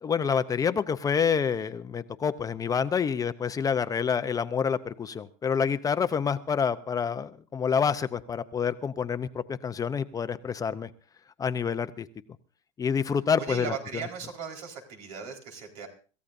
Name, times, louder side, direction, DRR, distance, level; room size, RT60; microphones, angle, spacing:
voice 1, 0.0-10.9 11.4-12.1 12.8-13.7, left 6 dB, 20° left, 12 dB, 0.7 m, -27 dB
voice 2, 13.4-15.9, right 6 dB, 80° right, 2 dB, 4.5 m, -37 dB
26.0 x 15.0 x 2.6 m, 0.38 s
supercardioid pair, 135°, 17 cm